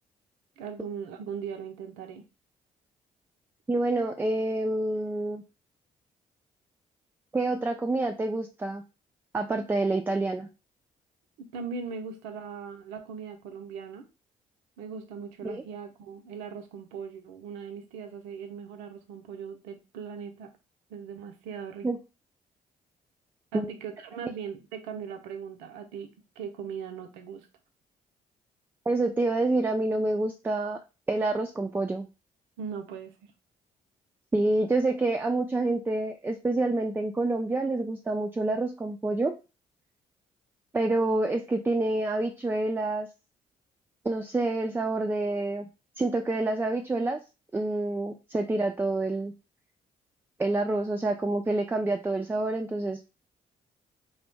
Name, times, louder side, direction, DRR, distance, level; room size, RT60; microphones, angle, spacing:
voice 1, 0.6-2.2 11.4-14.1 14.8-20.5 20.9-21.9 23.5-26.1 26.4-27.5 32.6-33.3, right 6 dB, 80° right, 6 dB, 0.5 m, -39 dB
voice 2, 3.7-5.4 7.3-8.8 9.3-10.5 15.4-15.6 21.8-22.0 23.5-23.7 24.2-24.3 28.9-30.8 31.1-32.1 34.3-39.3 40.7-43.1 44.0-45.7 46.0-47.2 47.5-49.3 50.4-53.0, right 2 dB, 10° right, 5 dB, 0.3 m, -27 dB
2.4 x 2.0 x 3.2 m, 0.29 s
hypercardioid pair, 45°, 19 cm